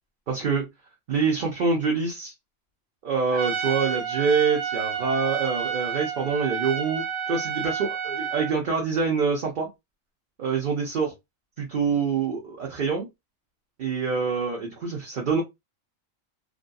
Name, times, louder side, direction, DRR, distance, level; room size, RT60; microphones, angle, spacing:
voice 1, 0.3-0.6 1.1-2.3 3.0-9.7 10.4-11.1 11.6-13.1 13.8-15.4, right 5 dB, 50° right, 0.7 m, -26 dB
Trumpet, 3.3-8.6, right 7 dB, 80° right, 1.1 m, -30 dB
2.6 x 2.6 x 2.2 m
omnidirectional pair, 1.3 m